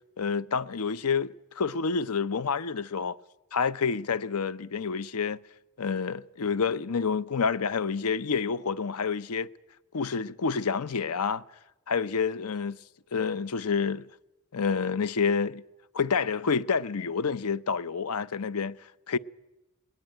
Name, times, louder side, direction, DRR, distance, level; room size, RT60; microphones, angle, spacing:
voice 1, 0.2-3.2 3.5-5.4 5.8-9.5 9.9-11.4 11.9-12.8 13.1-14.1 14.5-15.6 15.9-18.8 19.1-19.2, left 5 dB, 85° left, 0.7 m, -28 dB
19.5 x 19.5 x 9.2 m
head